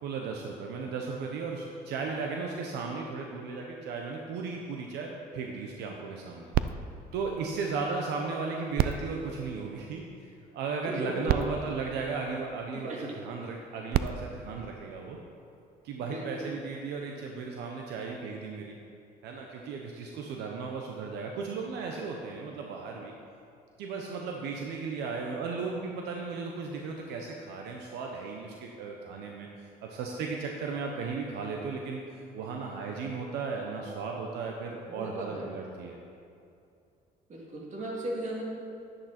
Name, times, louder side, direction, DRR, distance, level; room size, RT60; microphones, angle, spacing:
voice 1, 0.0-6.5 7.1-10.3 10.5-15.2 15.8-18.8 19.2-23.1 23.8-36.0, right 4 dB, 85° right, 1 dB, 1.1 m, -36 dB
sound 1, 6.5-8.2 8.7-10.3 11.0-11.1 11.3-12.8 13.7-15.5 16.2-16.3, right 10 dB, 65° right, 0.5 m, -34 dB
voice 2, 10.8-11.3 12.7-13.1 16.0-16.5 34.9-35.5 37.3-38.4, right 1 dB, 45° right, -3 dB, 2.8 m, -36 dB
11.0 x 10.5 x 4.4 m, 2.5 s
cardioid pair, 110°, 17 cm